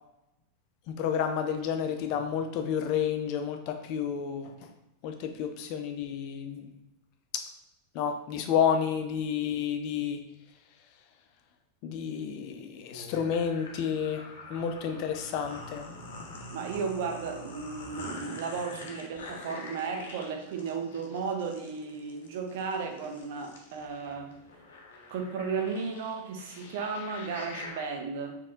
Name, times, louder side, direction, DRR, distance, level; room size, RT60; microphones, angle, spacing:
voice 1, 0.9-4.7 5.0-6.7 7.9-10.2 11.8-14.2 14.5-15.9, left 8 dB, 50° left, 6 dB, 0.5 m, -30 dB
sound 1, 12.9-27.9, left 2 dB, 70° left, 0.8 m, -45 dB
voice 2, 16.5-24.3 25.1-28.4, right 5 dB, 60° right, 3 dB, 0.7 m, -34 dB
4.0 x 2.7 x 3.6 m, 0.87 s
hypercardioid pair, 95°, 0 cm